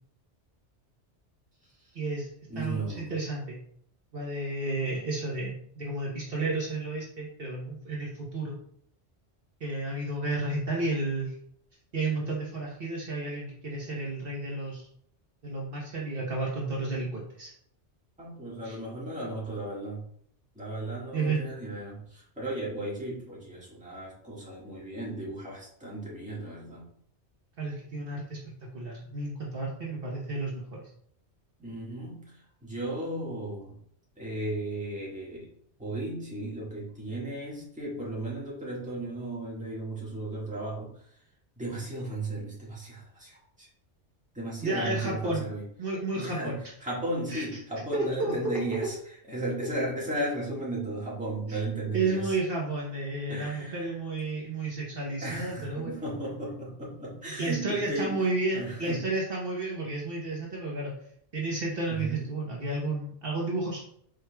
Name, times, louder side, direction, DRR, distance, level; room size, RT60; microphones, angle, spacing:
voice 1, 1.9-3.6 4.1-8.6 9.6-11.3 11.9-14.8 15.4-17.5 18.6-18.8 21.1-21.4 27.6-30.9 44.6-45.4 45.8-46.6 47.3-47.4 47.9-48.3 48.7-48.8 51.5-51.6 51.9-56.0 57.4-60.9 61.3-63.8, right 2 dB, 55° right, -3 dB, 1.1 m, -32 dB
voice 2, 2.5-3.1 18.2-20.0 20.5-26.9 31.6-33.8 34.2-35.5 35.8-41.0 41.6-43.7 44.3-45.6 46.1-49.0 49.3-52.4 53.3-53.9 55.2-58.1 58.5-59.0 61.9-62.3, right 1 dB, 5° right, -6 dB, 1.5 m, -35 dB
5.0 x 4.5 x 2.2 m, 0.66 s
omnidirectional pair, 1.2 m